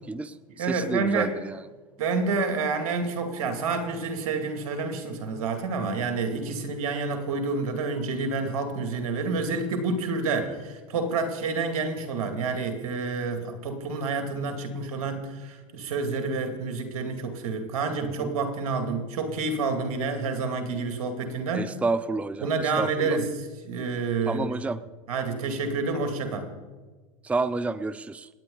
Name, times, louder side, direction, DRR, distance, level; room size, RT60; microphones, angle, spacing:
voice 1, 0.1-1.6 18.0-18.3 21.5-23.2 24.3-24.8 27.2-28.3, right 3 dB, 5° right, 16 dB, 0.5 m, -30 dB
voice 2, 0.6-1.3 2.0-21.8 22.4-24.5 25.1-26.5, right 4 dB, 80° right, 6 dB, 2.4 m, -28 dB
27.5 x 9.5 x 3.9 m, 1.3 s
hypercardioid pair, 105°, 18 cm